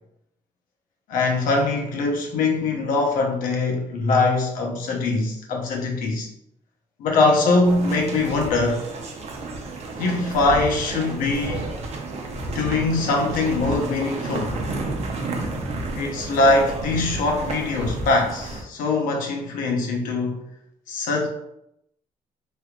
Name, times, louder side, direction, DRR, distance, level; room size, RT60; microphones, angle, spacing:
voice 1, 1.1-6.3 7.0-8.8 10.0-11.7 12.5-14.6 15.9-20.4 20.9-21.3, left 3 dB, 85° left, 0.7 m, -22 dB
sound 1, 7.6-18.6, right 2 dB, 50° right, 0.6 m, -31 dB
3.1 x 3.0 x 2.4 m
cardioid pair, 100°, 14 cm